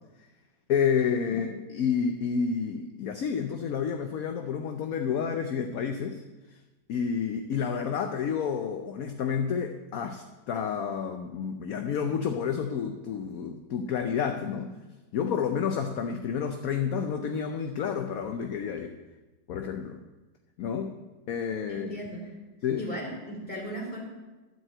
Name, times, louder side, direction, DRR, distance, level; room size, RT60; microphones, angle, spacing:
voice 1, 0.7-6.2 6.5-6.6 6.9-14.7 15.1-18.9 19.5-20.0 20.6-20.9 21.3-21.9 22.6-22.9, left 7 dB, 65° left, 5 dB, 1.0 m, -30 dB
voice 2, 21.7-22.3 22.8-24.0, right 1 dB, 5° left, -4 dB, 2.8 m, -37 dB
12.5 x 4.6 x 7.7 m, 1.2 s
omnidirectional pair, 2.0 m